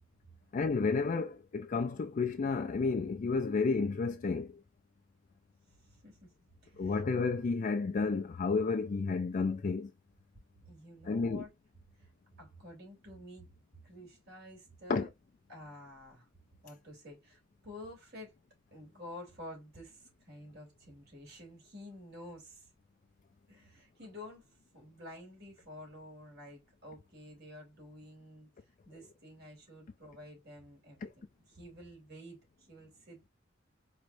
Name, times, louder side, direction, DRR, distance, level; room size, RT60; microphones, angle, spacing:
voice 1, 0.5-4.5 6.8-9.9 11.1-11.4 14.9-15.1 31.0-31.1, left 4 dB, 40° left, 0.4 m, -31 dB
voice 2, 5.7-6.3 6.6-7.0 10.7-11.5 12.0-12.1 12.4-13.5 13.8-15.1 15.5-16.3 16.6-18.3 18.7-22.7 23.5-33.3, left 1 dB, 55° right, 3.0 m, -50 dB
4.6 x 3.1 x 2.5 m
head